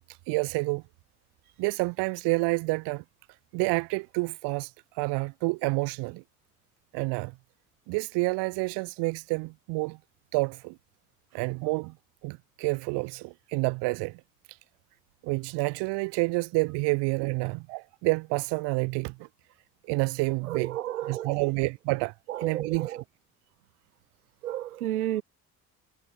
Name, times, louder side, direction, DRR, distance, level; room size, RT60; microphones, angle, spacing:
voice 1, 0.1-0.8 1.6-3.0 3.5-6.2 6.9-7.3 7.9-10.0 10.3-10.7 11.3-11.9 12.2-14.2 14.5-14.6 15.2-19.3 19.9-23.0, right 26 dB, 70° right, 2.0 m, -29 dB
voice 2, 20.5-21.4 22.3-23.0 24.4-25.2, right 13 dB, 85° right, 2.6 m, -32 dB
hypercardioid pair, 50°, 43 cm